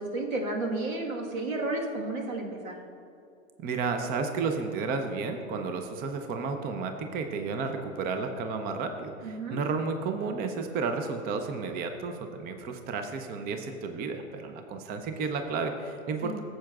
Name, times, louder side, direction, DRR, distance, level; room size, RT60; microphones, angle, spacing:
voice 1, 0.0-2.7 9.2-9.6 16.2-16.4, right 2 dB, 80° right, 1 dB, 1.6 m, -32 dB
voice 2, 3.6-16.4, right 4 dB, 25° right, 6 dB, 0.5 m, -32 dB
14.0 x 7.7 x 2.4 m, 2.6 s
hypercardioid pair, 110°, 40 cm